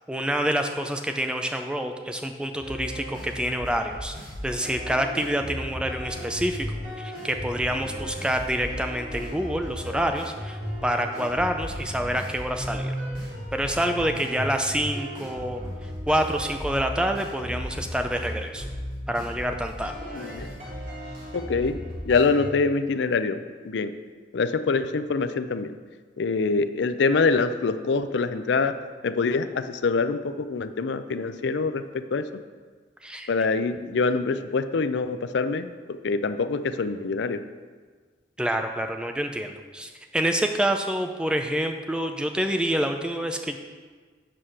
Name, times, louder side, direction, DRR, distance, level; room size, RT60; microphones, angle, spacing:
voice 1, 0.1-4.1 4.4-6.7 7.0-12.9 13.5-18.7 19.1-19.9 33.0-33.3 38.4-43.6, equal, 5° right, 5 dB, 0.4 m, -27 dB
sound 1, 2.6-22.5, equal, 45° right, 2.3 m, -35 dB
voice 2, 20.1-20.5 21.3-21.8 22.1-23.9 24.3-25.7 26.2-28.8 29.0-32.3 33.3-37.4, left 4 dB, 75° left, 11 dB, 0.4 m, -25 dB
7.7 x 4.9 x 5.8 m, 1.5 s
head